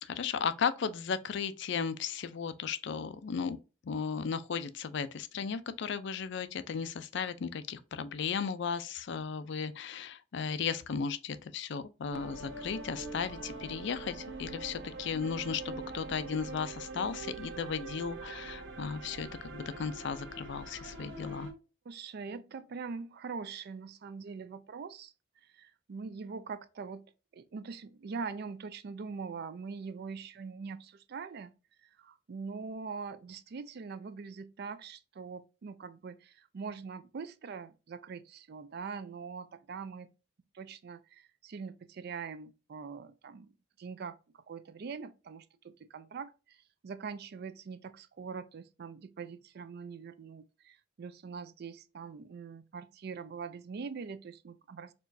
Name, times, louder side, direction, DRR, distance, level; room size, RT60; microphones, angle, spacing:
voice 1, 0.0-3.6 3.8-21.5, left 6 dB, 65° left, 0.4 m, -35 dB
sound 1, 12.1-21.5, right 3 dB, 90° right, 1.2 m, -44 dB
voice 2, 21.9-25.1 25.4-27.0 27.3-31.5 31.8-40.1 40.5-43.5 43.8-54.9, right 5 dB, 55° right, 0.4 m, -43 dB
4.4 x 3.0 x 2.6 m
head